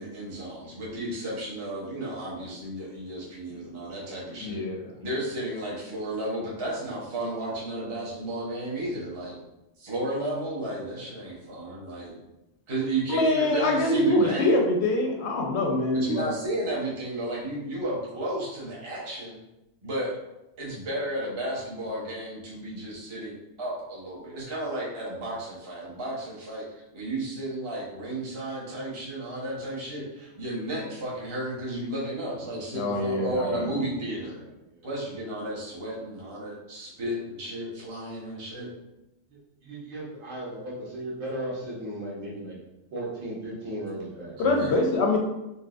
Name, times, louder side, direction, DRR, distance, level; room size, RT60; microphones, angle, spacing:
voice 1, 0.0-4.6 5.0-9.4 9.8-12.2 12.7-14.5 15.9-19.4 19.8-20.1 20.6-34.4 34.8-38.7 44.4-44.8, right 1 dB, 30° right, -7 dB, 0.7 m, -33 dB
voice 2, 4.3-4.8 13.1-16.3 32.7-33.6 44.4-45.2, left 2 dB, 65° left, 1 dB, 0.7 m, -24 dB
voice 3, 34.4-34.9 39.3-42.6 42.9-44.3, right 1 dB, 75° right, -6 dB, 1.4 m, -36 dB
4.0 x 2.2 x 2.4 m, 0.92 s
omnidirectional pair, 1.4 m